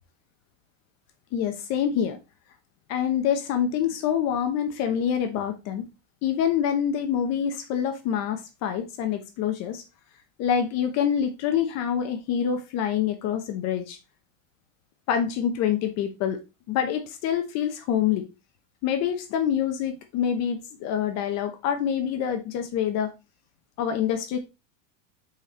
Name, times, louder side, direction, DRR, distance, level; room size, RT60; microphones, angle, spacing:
voice 1, 1.3-2.2 2.9-5.9 6.2-9.8 10.4-14.0 15.1-16.4 16.7-18.3 18.8-23.1 23.8-24.4, left 8 dB, 45° left, 7 dB, 1.0 m, -26 dB
6.4 x 4.4 x 3.8 m, 0.27 s
supercardioid pair, 150°, 38 cm